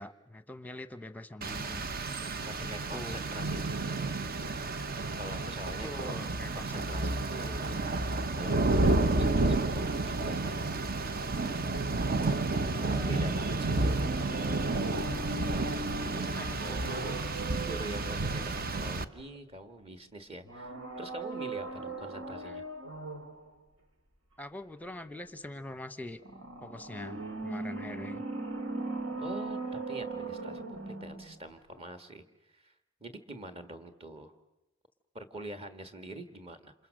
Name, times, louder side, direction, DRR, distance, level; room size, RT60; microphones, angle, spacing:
voice 1, 0.0-1.9 2.6-3.2 5.8-7.0 12.5-13.4 16.3-16.6 22.4-22.6 24.4-26.2 26.6-28.2, left 1 dB, 10° left, 11 dB, 0.9 m, -43 dB
Rain, 1.4-19.0, right 2 dB, 50° right, 0.8 m, -31 dB
voice 2, 2.4-4.3 5.1-6.2 6.5-10.6 12.2-14.4 15.4-18.4 18.7-22.6 29.2-32.7 33.0-34.3 35.1-36.7, right 1 dB, 30° right, 8 dB, 1.6 m, -45 dB
sound 1, 13.6-19.4 20.4-23.4 26.2-31.4 31.7-31.8, right 2 dB, 80° right, 2.6 m, -39 dB
28.0 x 27.0 x 6.4 m, 0.92 s
head